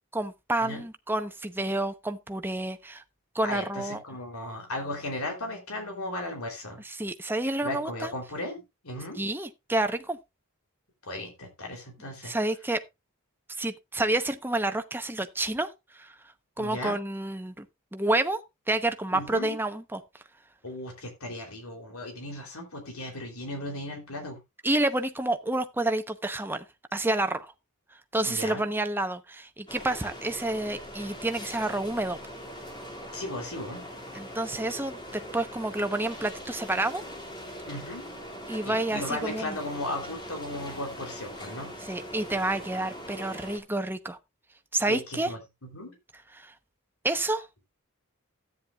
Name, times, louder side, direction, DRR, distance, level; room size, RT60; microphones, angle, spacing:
voice 1, 0.1-3.0 3.3-4.0 6.8-8.1 9.2-10.2 12.2-12.8 13.6-15.7 16.0-16.1 16.6-17.7 17.9-18.4 18.7-20.0 24.6-26.6 26.9-27.5 28.1-32.2 34.1-37.0 38.5-39.6 41.9-44.2 44.7-45.3 46.4-46.5 47.0-47.5, right 2 dB, 10° right, 0.9 m, -29 dB
voice 2, 3.4-6.8 7.6-9.2 11.0-12.3 16.6-17.0 19.1-19.5 20.6-24.4 28.3-28.6 33.1-33.9 37.6-38.1 38.6-41.7 44.9-45.9, left 1 dB, 80° left, 3.3 m, -36 dB
sound 1, 29.7-43.6, equal, 20° left, 2.3 m, -41 dB
13.5 x 9.5 x 2.4 m
head